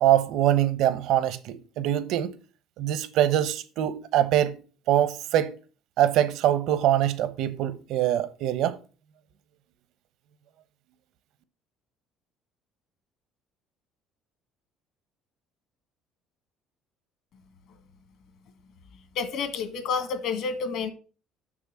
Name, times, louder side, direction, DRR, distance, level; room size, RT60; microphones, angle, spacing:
voice 1, 0.0-2.3 2.8-4.5 4.9-5.5 6.0-8.8, right 11 dB, 65° right, 1.0 m, -23 dB
voice 2, 19.2-20.9, left 5 dB, 60° left, 1.7 m, -29 dB
6.7 x 6.1 x 7.5 m
cardioid pair, 145°, 0 cm